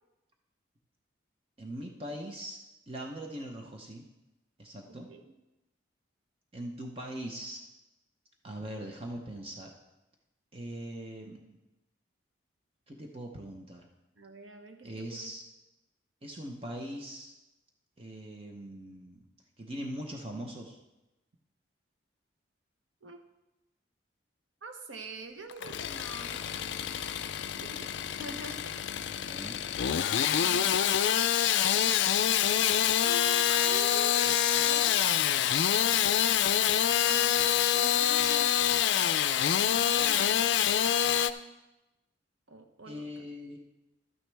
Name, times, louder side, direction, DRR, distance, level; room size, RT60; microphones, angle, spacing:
voice 1, 1.6-2.6 2.9-4.0 4.6-5.1 6.5-7.6 8.4-9.7 10.5-11.6 12.9-13.9 14.8-15.4 16.2-17.3 18.0-19.3 19.6-20.8 29.1-29.6 42.8-43.6, right 1 dB, 30° right, 2 dB, 0.7 m, -41 dB
voice 2, 4.9-5.3 14.2-15.3 23.0-23.2 24.6-27.1 27.6-28.8 30.3-31.1 33.0-35.2 36.9-38.6 39.5-40.6 42.5-43.3, right 3 dB, 80° right, 6 dB, 1.0 m, -45 dB
Engine starting / Sawing, 25.5-41.3, left 10 dB, 70° left, 0.4 m, -26 dB
12.0 x 9.2 x 3.4 m, 0.99 s
head